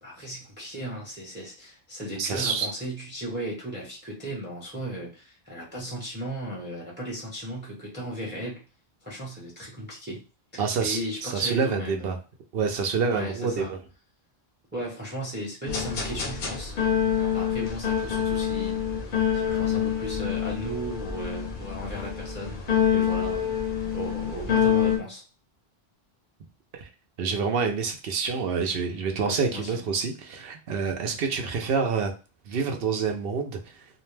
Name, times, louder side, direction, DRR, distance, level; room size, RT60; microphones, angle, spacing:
voice 1, 0.0-8.6 9.0-10.2 10.5-12.2 13.1-13.7 14.7-16.7 17.3-18.8 19.3-22.7 22.9-23.6 23.9-25.2 29.2-29.8 31.0-31.2, right 1 dB, 10° right, -3 dB, 0.7 m, -36 dB
voice 2, 2.2-2.7 10.6-12.2 12.5-13.8 26.7-26.9 27.2-32.1 32.5-33.9, right 5 dB, 70° right, 5 dB, 0.8 m, -27 dB
sound 1, 15.7-25.0, left 8 dB, 60° left, 0.7 m, -26 dB
2.5 x 2.1 x 3.1 m, 0.32 s
omnidirectional pair, 1.0 m